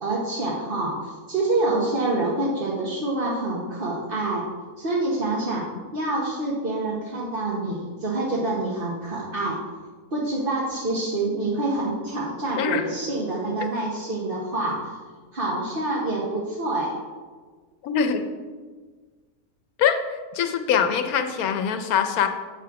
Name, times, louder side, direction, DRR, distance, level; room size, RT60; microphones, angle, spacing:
voice 1, 0.0-4.4 4.8-5.7 5.9-9.6 10.1-15.0 15.3-16.9, right 2 dB, 40° right, -5 dB, 1.2 m, -26 dB
voice 2, 17.8-18.3 19.8-20.0 20.3-22.3, left 7 dB, 85° left, 7 dB, 1.2 m, -23 dB
7.8 x 5.9 x 4.7 m, 1.5 s
omnidirectional pair, 1.5 m